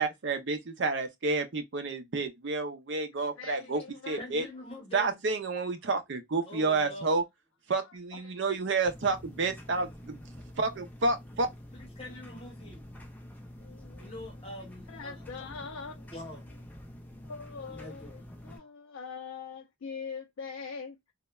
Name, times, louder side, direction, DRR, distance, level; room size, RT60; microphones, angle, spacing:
voice 1, 0.0-3.8 4.1-4.4 4.9-7.2 7.7-10.2 10.6-11.5, right 3 dB, 60° right, 0.5 m, -30 dB
voice 2, 3.4-4.2 8.1-8.4 13.6-14.1 14.9-16.1 17.2-18.1 18.4-21.0, left 5 dB, 80° left, 0.4 m, -42 dB
voice 3, 4.2-5.2 6.5-7.1 11.7-12.9 14.0-15.2 16.1-16.5 17.7-18.2, left 1 dB, 25° left, 0.8 m, -44 dB
sound 1, 8.9-18.6, equal, 10° left, 0.3 m, -47 dB
3.1 x 2.1 x 2.2 m
head